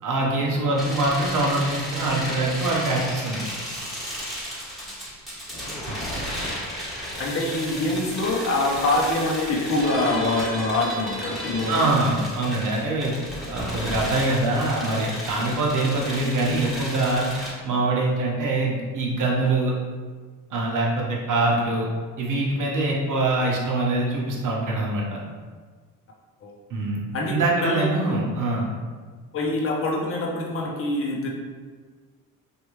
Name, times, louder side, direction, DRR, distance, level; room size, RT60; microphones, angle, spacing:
voice 1, 0.0-3.5 5.9-6.0 11.7-13.1 13.5-17.3 17.6-19.7 20.5-21.9 22.2-25.2 26.7-27.0 27.3-28.7, right 2 dB, 50° right, -2 dB, 1.0 m, -24 dB
sound 1, 0.7-17.5, equal, ahead, 1.3 m, -33 dB
voice 2, 7.2-11.9 26.4-26.5 27.1-27.8 29.3-31.3, left 2 dB, 35° left, -2 dB, 0.7 m, -25 dB
3.2 x 2.6 x 3.1 m, 1.5 s
supercardioid pair, 65°, 40 cm